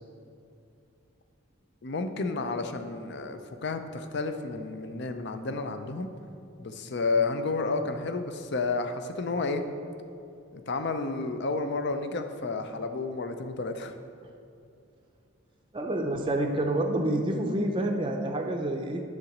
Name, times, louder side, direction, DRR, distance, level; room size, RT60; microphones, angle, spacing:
voice 1, 1.8-6.1 6.6-9.6 10.5-13.9, left 3 dB, 55° left, 8 dB, 0.6 m, -31 dB
voice 2, 15.7-19.0, right 1 dB, 25° right, 2 dB, 0.5 m, -28 dB
9.8 x 3.9 x 7.1 m, 2.6 s
head